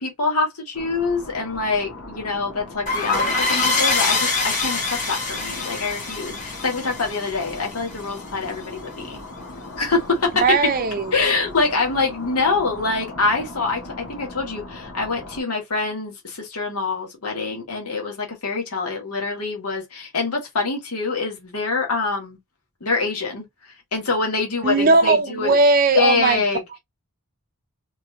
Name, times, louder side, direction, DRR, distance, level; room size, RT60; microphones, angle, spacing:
voice 1, 0.0-9.2 9.8-10.4 11.1-13.8 14.1-22.4 22.8-23.5 23.9-25.5 25.9-26.6, left 3 dB, 85° left, 1.5 m, -25 dB
sound 1, 0.7-15.4, left 2 dB, 70° left, 1.7 m, -39 dB
sound 2, 2.9-8.2, left 3 dB, 35° left, 1.3 m, -24 dB
voice 2, 10.4-11.1 24.6-26.4, right 3 dB, 40° right, 0.5 m, -18 dB
3.8 x 3.2 x 2.2 m
head